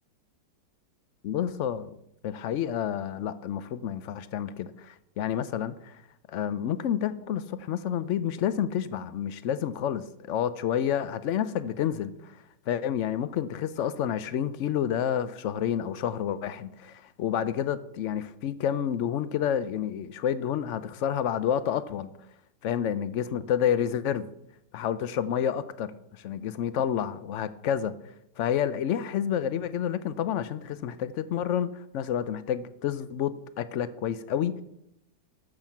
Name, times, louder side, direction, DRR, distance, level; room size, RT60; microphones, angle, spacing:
voice 1, 1.2-2.0 2.2-6.0 6.3-12.4 12.7-22.1 22.6-24.3 24.7-27.9 28.4-34.6, left 9 dB, 85° left, 14 dB, 0.6 m, -29 dB
13.0 x 6.1 x 7.1 m, 0.80 s
omnidirectional pair, 1.9 m